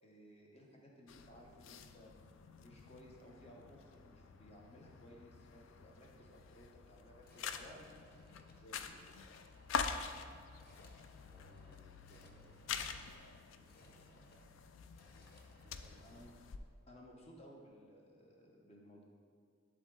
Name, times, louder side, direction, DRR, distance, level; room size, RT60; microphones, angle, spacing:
voice 1, 0.0-2.1 2.6-9.6 13.2-14.0 16.0-16.3 16.9-19.0, equal, 35° left, -1 dB, 1.1 m, -59 dB
sound 1, 1.1-16.6, left 6 dB, 80° left, 0.4 m, -46 dB
sound 2, 7.1-16.3, left 1 dB, 55° left, 0.8 m, -66 dB
voice 2, 10.5-12.6 15.2-16.1, right 1 dB, 30° right, 3 dB, 0.4 m, -66 dB
10.5 x 3.7 x 3.9 m, 2.1 s
head